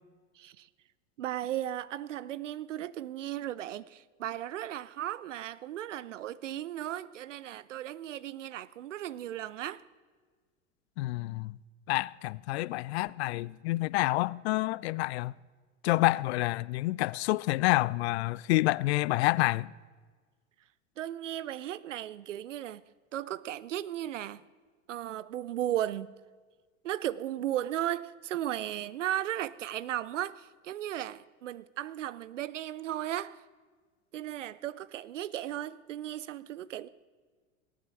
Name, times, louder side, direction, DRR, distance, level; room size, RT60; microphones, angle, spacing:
voice 1, 0.4-0.7 1.2-9.8 21.0-22.8 23.1-24.4 24.9-26.1 26.8-33.4 34.1-36.9, right 12 dB, 80° right, 0.6 m, -36 dB
voice 2, 11.0-11.6 11.9-15.3 15.8-19.7, left 19 dB, 60° left, 0.5 m, -28 dB
18.0 x 9.4 x 4.7 m
hypercardioid pair, 85°, 37 cm